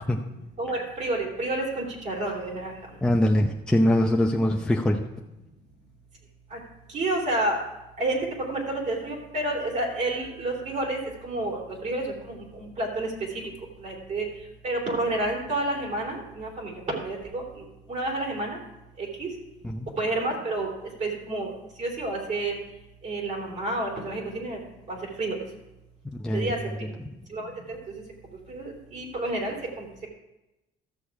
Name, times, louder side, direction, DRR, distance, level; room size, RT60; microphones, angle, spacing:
voice 1, 0.6-2.7 6.5-6.6 6.9-7.6 8.0-8.2 8.5-13.1 13.8-14.3 14.6-17.4 17.9-18.6 19.0-19.3 20.0-20.7 21.0-21.5 21.8-22.5 23.0-24.6 24.9-25.4 26.3-26.6 27.3-28.0 28.5-29.9, right 2 dB, 45° right, 0 dB, 3.3 m, -29 dB
voice 2, 3.0-5.0 19.6-19.9 26.2-26.5 26.8-27.1, left 1 dB, 5° left, 0 dB, 0.7 m, -23 dB
13.5 x 6.9 x 4.8 m, 0.97 s
cardioid pair, 110°, 17 cm